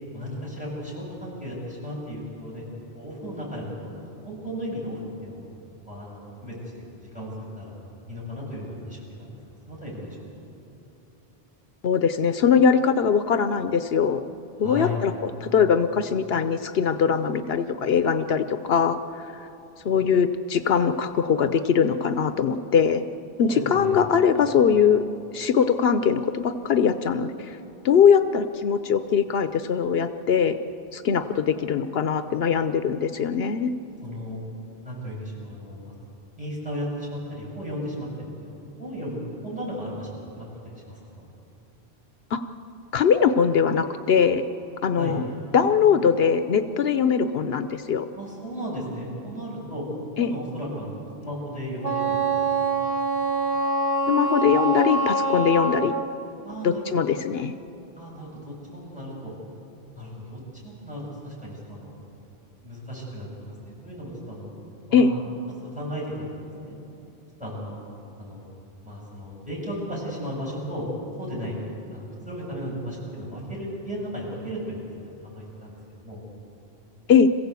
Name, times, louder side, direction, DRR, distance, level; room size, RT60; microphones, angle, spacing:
voice 1, 0.1-2.6 3.0-5.4 5.9-7.7 8.1-10.3 14.6-15.0 23.4-24.0 34.0-34.4 34.8-35.9 36.4-41.3 45.0-45.2 48.1-49.9 50.2-52.3 52.5-52.6 56.4-57.1 58.0-59.3 60.0-62.0 62.6-64.5 64.9-66.3 66.6-66.8 67.4-67.8 68.2-68.5 68.8-70.9 71.2-71.6 71.9-74.9 75.2-76.2, equal, 5° right, -6 dB, 7.5 m, -35 dB
voice 2, 11.8-14.2 14.6-19.3 19.8-23.0 23.4-25.0 25.3-27.6 27.8-30.6 30.9-33.7 42.3-42.4 42.9-44.4 44.8-45.3 45.5-48.1 50.2-50.3 54.1-55.9 56.6-57.5 64.9-65.1 77.1-77.3, left 7 dB, 75° left, 10 dB, 0.9 m, -21 dB
Wind instrument woodwind instrument, 51.8-56.1, right 3 dB, 35° left, 1.8 m, -25 dB
26.5 x 16.0 x 8.3 m, 2.9 s
omnidirectional pair, 1.0 m